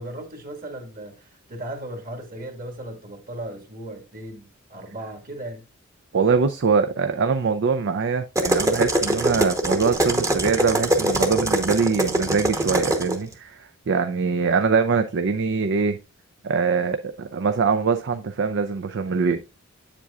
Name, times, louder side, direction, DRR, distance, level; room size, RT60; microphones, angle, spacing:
voice 1, 0.0-5.7, right 1 dB, 40° right, 1.8 m, -37 dB
voice 2, 6.1-16.0 16.4-19.4, right 5 dB, 60° right, 0.5 m, -23 dB
sound 1, 8.3-13.2, right 1 dB, 15° right, 0.9 m, -22 dB
8.1 x 7.5 x 2.4 m
head